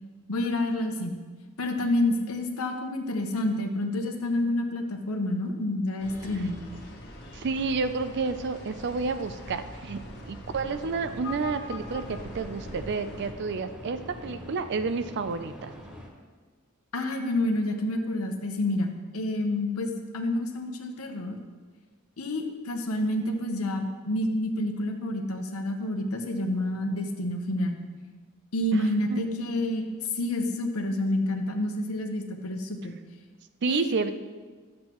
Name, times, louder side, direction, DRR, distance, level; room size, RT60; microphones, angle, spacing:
voice 1, 0.3-1.2 1.6-6.6 16.9-21.4 22.2-27.8 28.5-29.9 30.1-32.9 33.7-34.0, left 1 dB, 85° left, 4 dB, 1.0 m, -28 dB
sound 1, 6.0-13.3, left 1 dB, 50° left, 1.3 m, -42 dB
voice 2, 7.3-15.7 28.7-29.6 33.6-34.1, right 4 dB, 55° right, 10 dB, 0.5 m, -30 dB
sound 2, 10.6-16.1, equal, 5° right, 1.6 m, -44 dB
12.0 x 7.5 x 3.0 m, 1.4 s
head